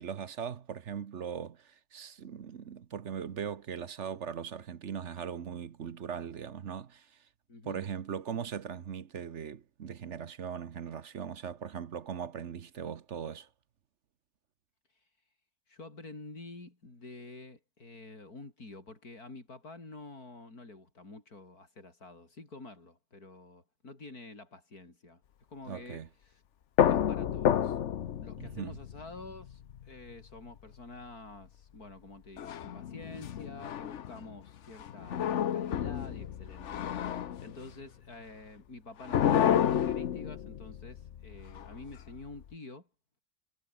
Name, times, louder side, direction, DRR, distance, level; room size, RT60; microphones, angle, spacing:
voice 1, 0.0-7.1 7.7-13.5 25.7-26.1 28.4-28.7, right 7 dB, 55° right, 1.2 m, -39 dB
voice 2, 7.5-7.8 15.7-25.2 25.5-26.4 26.8-27.8 28.2-42.9, left 2 dB, 80° left, 5.8 m, -48 dB
sound 1, 26.8-30.2 32.4-34.3 34.8-37.7 39.0-42.4, left 9 dB, 55° left, 1.1 m, -30 dB
omnidirectional pair, 1.6 m